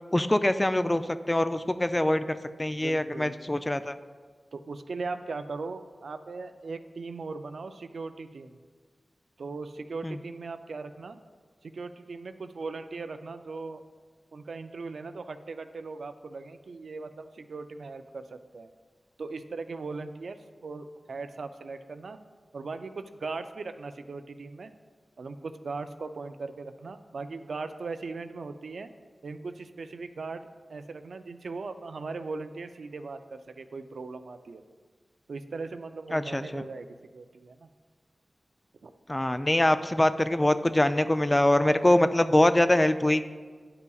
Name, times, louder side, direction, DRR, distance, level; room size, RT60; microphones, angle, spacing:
voice 1, 0.1-3.9 10.0-10.2 36.1-36.6 39.1-43.3, left 1 dB, 20° left, 10 dB, 0.3 m, -24 dB
voice 2, 2.8-3.4 4.5-8.6 9.4-11.2 11.6-13.8 14.3-18.7 19.2-22.2 22.5-24.7 25.2-28.9 29.2-34.6 35.3-37.7 38.8-38.9, right 3 dB, 80° right, 9 dB, 0.3 m, -39 dB
10.5 x 5.5 x 2.3 m, 1.5 s
cardioid pair, 55°, 0 cm